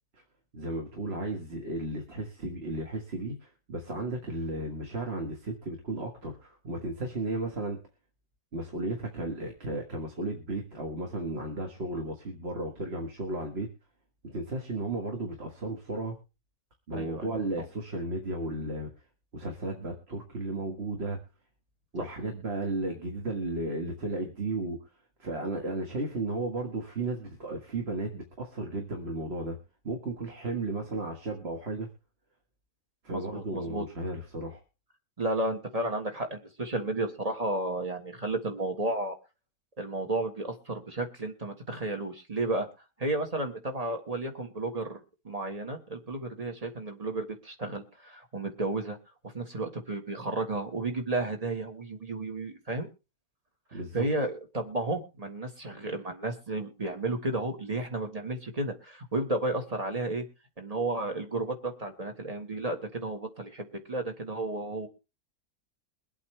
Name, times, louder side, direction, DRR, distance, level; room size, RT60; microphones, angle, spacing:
voice 1, 0.5-7.8 8.5-13.7 14.2-16.1 16.9-18.9 19.3-21.2 21.9-24.8 25.2-29.6 29.8-31.9 33.0-34.6 53.7-54.1, right 2 dB, 45° right, 3 dB, 1.9 m, -34 dB
voice 2, 16.9-17.6 33.1-33.8 35.2-39.1 39.8-42.7 43.0-49.0 49.2-52.9 53.7-60.2 60.6-64.9, right 2 dB, 25° right, 5 dB, 1.7 m, -33 dB
23.0 x 8.3 x 3.3 m, 0.29 s
omnidirectional pair, 1.5 m